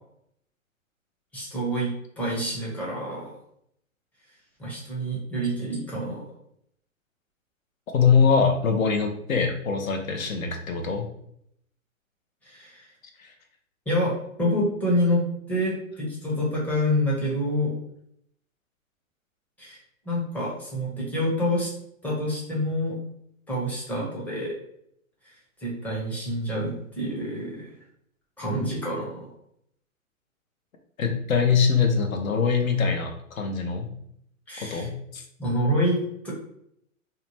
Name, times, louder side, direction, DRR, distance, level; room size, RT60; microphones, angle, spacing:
voice 1, 1.3-3.3 4.6-6.2 12.4-12.9 13.9-17.7 19.6-19.8 20.1-21.7 22.0-23.0 23.5-24.5 25.6-27.7 28.4-29.3 34.5-34.9 35.4-36.3, equal, 5° left, -5 dB, 0.5 m, -27 dB
voice 2, 7.9-11.1 13.2-13.3 31.0-33.9 34.6-35.2, left 5 dB, 80° left, 4 dB, 0.7 m, -23 dB
2.7 x 2.2 x 3.0 m, 0.72 s
hypercardioid pair, 120°, 41 cm